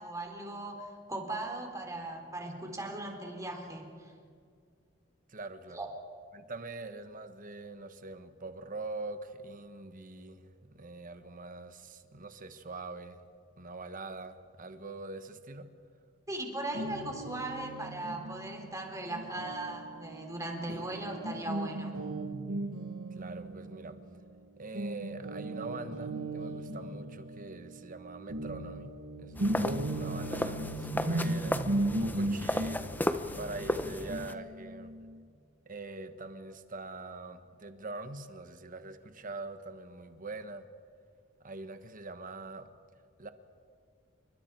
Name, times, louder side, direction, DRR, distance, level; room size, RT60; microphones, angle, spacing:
voice 1, 0.0-3.9 5.7-5.9 16.3-22.0, right 1 dB, 15° right, 3 dB, 3.2 m, -38 dB
voice 2, 5.3-5.9 6.3-13.2 13.6-15.7 23.1-24.0 24.6-32.9 33.4-34.9 35.6-40.6 41.4-42.7 43.2-43.3, right 3 dB, 45° right, 9 dB, 1.3 m, -43 dB
Guitar, 16.7-24.4 24.7-35.2, right 1 dB, 85° right, 1.4 m, -37 dB
sound 1, 29.4-34.3, left 1 dB, 10° left, 0.7 m, -35 dB
28.0 x 23.5 x 4.6 m, 2.1 s
head